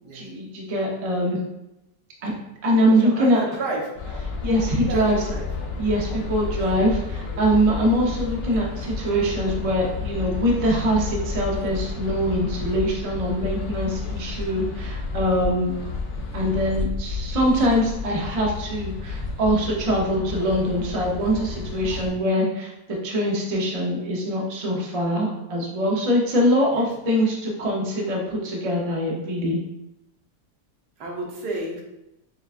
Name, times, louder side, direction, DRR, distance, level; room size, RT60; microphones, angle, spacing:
voice 1, 0.1-1.4 2.2-2.3 2.6-3.4 4.4-5.2 5.8-15.7 16.3-22.7 23.0-29.6, equal, 50° right, -2 dB, 0.4 m, -23 dB
voice 2, 2.9-3.9 4.6-5.5 6.6-6.7 26.7-26.9 31.0-31.8, right 2 dB, 70° right, -2 dB, 1.4 m, -32 dB
sound 1, 4.0-22.1, left 4 dB, 80° left, 1.4 m, -31 dB
6.7 x 2.3 x 2.5 m, 0.90 s
omnidirectional pair, 1.9 m